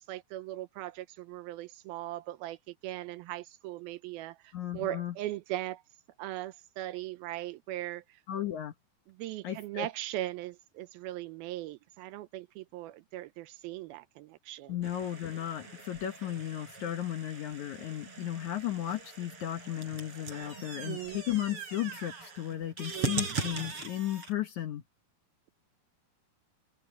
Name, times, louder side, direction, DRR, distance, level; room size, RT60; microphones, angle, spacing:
voice 1, 0.0-5.8 6.2-8.0 9.2-14.8 20.8-21.2 22.9-23.2, right 15 dB, 80° right, 2.4 m, -39 dB
voice 2, 4.5-5.1 8.3-8.7 9.4-9.9 14.7-24.8, left 12 dB, 65° left, 2.0 m, -35 dB
sound 1, 14.8-24.3, right 4 dB, 35° right, 4.6 m, -40 dB
omnidirectional pair, 4.5 m